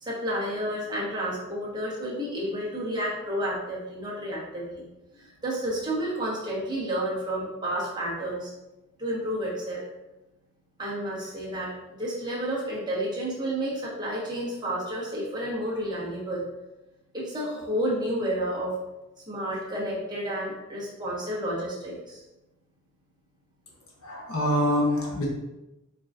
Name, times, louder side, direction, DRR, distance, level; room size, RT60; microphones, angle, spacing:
voice 1, 0.0-4.8 5.1-8.5 9.0-9.8 10.8-16.4 17.1-18.8 19.3-22.2, right 1 dB, 20° right, -7 dB, 1.2 m, -31 dB
voice 2, 24.0-25.3, left 1 dB, 75° left, -2 dB, 1.0 m, -25 dB
4.7 x 3.9 x 2.5 m, 0.99 s
head